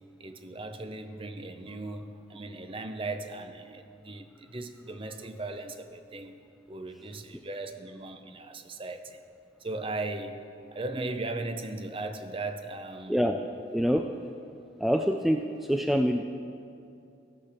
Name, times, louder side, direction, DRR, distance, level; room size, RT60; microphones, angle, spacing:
voice 1, 0.2-6.4 6.7-9.2 9.6-10.4 10.7-13.2, right 2 dB, 30° right, 8 dB, 0.7 m, -37 dB
voice 2, 13.1-13.4 13.7-14.1 14.8-15.4 15.7-16.2, equal, ahead, 4 dB, 0.3 m, -25 dB
15.5 x 6.6 x 5.9 m, 2.5 s
head